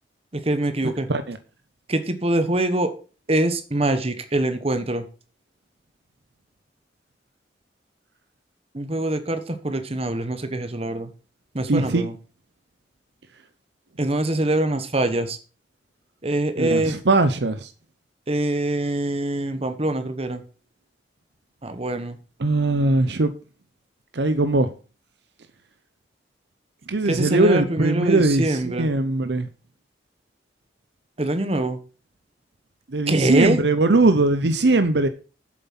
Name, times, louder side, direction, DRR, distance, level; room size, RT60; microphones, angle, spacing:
voice 1, 0.3-1.1 1.9-2.9 3.3-5.0 8.7-11.1 11.5-12.2 14.0-15.4 16.2-17.0 18.3-20.4 21.6-22.2 27.0-28.9 31.2-31.8 33.1-33.6, right 1 dB, 35° right, 1.2 m, -24 dB
voice 2, 11.7-12.0 16.6-17.7 22.4-23.3 24.1-24.7 26.9-29.5 32.9-35.1, right 2 dB, 65° right, 0.7 m, -20 dB
8.1 x 7.4 x 5.8 m
head